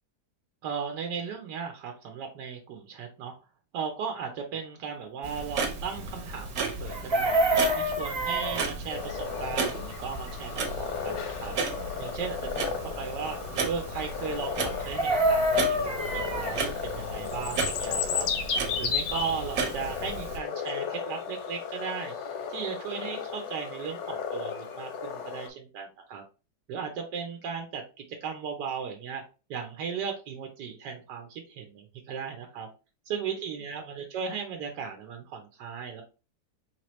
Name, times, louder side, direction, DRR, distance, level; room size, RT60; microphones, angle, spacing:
voice 1, 0.6-3.3 3.7-11.5 12.0-13.4 13.6-18.3 18.8-22.1 22.5-26.2 26.7-27.8 28.2-29.2 29.5-32.7 33.1-36.0, right 6 dB, 85° right, 4 dB, 1.3 m, -36 dB
Clock, 5.2-20.4, right 4 dB, 60° right, 1.3 m, -35 dB
Chicken rooster, 6.9-8.7 14.7-16.6 18.8-18.9 19.2-19.4, right 1 dB, 40° right, 0.3 m, -26 dB
sound 1, 8.9-25.5, left 6 dB, 60° left, 0.8 m, -34 dB
4.5 x 2.9 x 3.1 m, 0.32 s
omnidirectional pair, 1.8 m